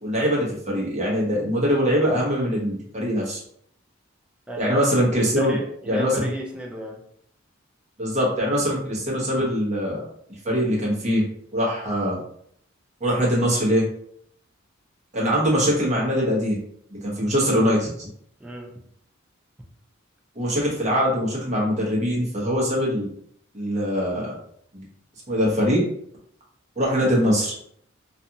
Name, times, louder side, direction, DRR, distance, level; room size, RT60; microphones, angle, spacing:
voice 1, 0.0-3.4 4.6-5.5 5.9-6.3 8.0-10.0 10.4-11.2 11.5-12.2 13.0-13.8 15.1-16.6 16.9-18.1 20.4-23.1 23.5-24.3 24.7-24.8 25.3-25.8 26.8-27.5, equal, 35° right, -4 dB, 0.9 m, -22 dB
voice 2, 4.5-4.9 5.4-7.0 18.4-18.7, left 1 dB, 5° right, -1 dB, 0.4 m, -31 dB
2.5 x 2.4 x 2.7 m, 0.68 s
head